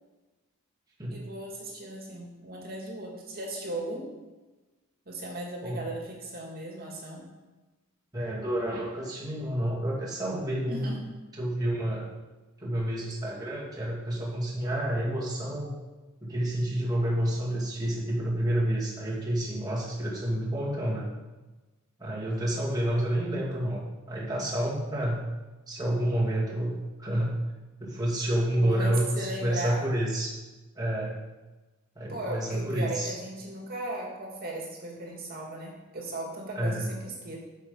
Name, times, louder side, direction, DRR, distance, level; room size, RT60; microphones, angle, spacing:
voice 1, 1.1-4.1 5.1-7.3 10.7-11.1 28.5-29.8 32.1-37.4, right 1 dB, 45° right, -1 dB, 2.3 m, -37 dB
voice 2, 8.1-10.9 11.4-12.1 12.6-15.7 16.2-21.1 22.0-25.2 25.7-27.4 27.8-30.3 30.8-31.2 32.0-33.1 36.6-36.9, right 1 dB, 20° right, -5 dB, 2.3 m, -29 dB
8.9 x 6.6 x 5.5 m, 1.2 s
head